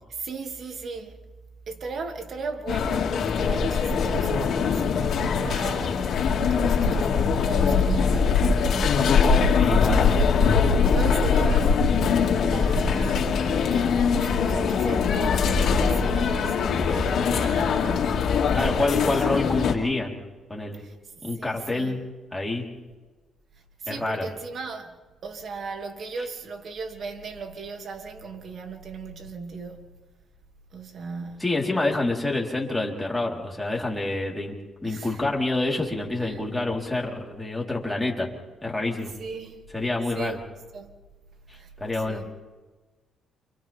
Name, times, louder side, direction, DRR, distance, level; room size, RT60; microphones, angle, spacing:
voice 1, 0.1-1.2 1.7-9.2 9.7-10.1 10.9-11.8 12.4-18.6 19.0-19.4 20.8-20.9 21.4-22.0 23.8-25.0 25.2-29.9 30.7-31.5 34.8-35.2 36.2-36.4 38.9-39.6 40.1-40.4 40.7-40.9 41.5-41.7 42.0-42.3, right 4 dB, 55° right, 2.7 m, -38 dB
sound 1, 2.7-19.7, left 5 dB, 65° left, 2.7 m, -22 dB
voice 2, 9.6-10.1 18.5-20.2 20.5-20.8 21.2-22.0 22.3-22.6 23.9-24.3 31.4-34.6 34.8-38.3 38.6-39.1 39.7-40.4 41.8-42.2, left 2 dB, 10° left, 4.3 m, -27 dB
29.5 x 26.5 x 3.7 m
cardioid pair, 90°, 0 cm